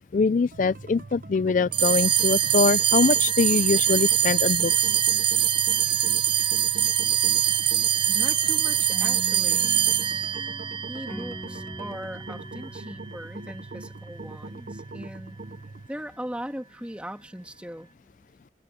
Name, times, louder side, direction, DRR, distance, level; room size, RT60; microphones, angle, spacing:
voice 1, 0.0-4.9, left 4 dB, 45° left, 0.4 m, -23 dB
sound 1, 0.5-15.9, right 3 dB, 50° right, 0.8 m, -41 dB
sound 2, 1.7-12.4, right 10 dB, 25° right, 0.4 m, -23 dB
voice 2, 8.1-9.7 10.9-15.4 15.9-18.2, equal, 5° right, 2.1 m, -39 dB
sound 3, 8.9-14.0, equal, 10° left, 1.3 m, -43 dB
head